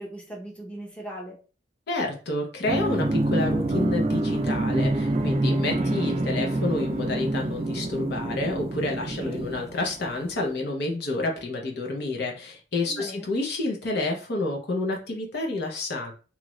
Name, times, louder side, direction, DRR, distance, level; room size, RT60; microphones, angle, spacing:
voice 1, 0.0-1.4 9.2-9.5 12.9-13.3, right 1 dB, 5° left, -2 dB, 0.8 m, -39 dB
voice 2, 1.9-16.1, left 2 dB, 55° left, 1 dB, 0.7 m, -29 dB
sound 1, 2.6-10.2, right 2 dB, 30° right, 0.3 m, -26 dB
3.0 x 2.4 x 3.0 m, 0.36 s
head